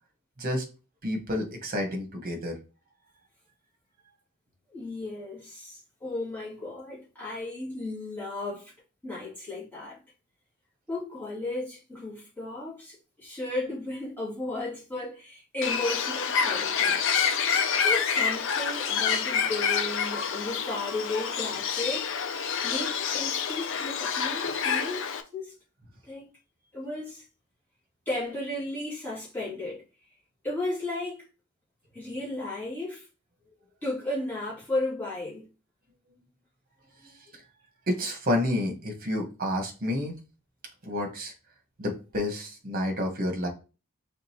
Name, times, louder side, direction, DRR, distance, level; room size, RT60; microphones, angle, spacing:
voice 1, 1.0-2.6 37.0-37.1 37.9-40.1 40.8-41.3 41.8-43.5, left 1 dB, 40° right, 1.2 m, -29 dB
voice 2, 4.7-8.7 9.0-10.0 10.9-17.0 17.8-25.1 25.3-25.5 26.0-26.3 26.7-27.2 28.1-29.8 30.4-31.3 31.9-33.1 33.8-35.5, left 2 dB, 10° left, 2.3 m, -34 dB
Bird, 15.6-25.2, left 6 dB, 60° left, 0.5 m, -27 dB
5.1 x 3.5 x 2.9 m
head